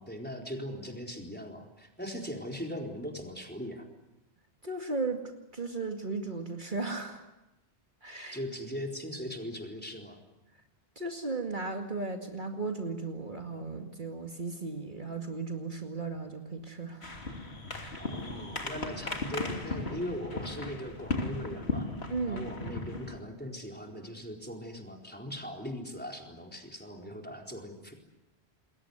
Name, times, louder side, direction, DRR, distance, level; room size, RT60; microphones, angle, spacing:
voice 1, 0.0-3.9 8.3-10.2 18.0-21.9 22.3-27.9, equal, 10° left, 1 dB, 4.3 m, -40 dB
voice 2, 4.6-5.2 5.5-7.3 8.0-8.4 11.0-17.0 17.8-18.1 22.1-22.5, right 3 dB, 50° right, 3 dB, 2.4 m, -36 dB
sound 1, 17.0-23.2, left 2 dB, 80° left, 3.2 m, -36 dB
29.0 x 21.5 x 8.1 m, 0.94 s
omnidirectional pair, 1.1 m